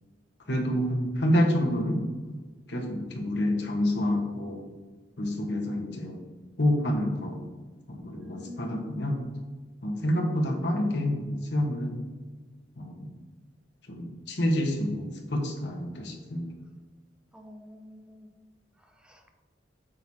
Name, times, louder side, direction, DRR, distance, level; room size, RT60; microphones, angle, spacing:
voice 1, 0.5-2.4 2.7-4.6 5.2-6.2 6.6-7.4 7.9-9.2 9.8-12.0 12.8-13.1 13.9-16.5, equal, 75° left, 0 dB, 1.3 m, -28 dB
voice 2, 8.2-8.9 17.3-18.3 19.1-19.4, left 2 dB, 5° right, 3 dB, 0.6 m, -47 dB
9.2 x 6.2 x 2.8 m, 1.3 s
head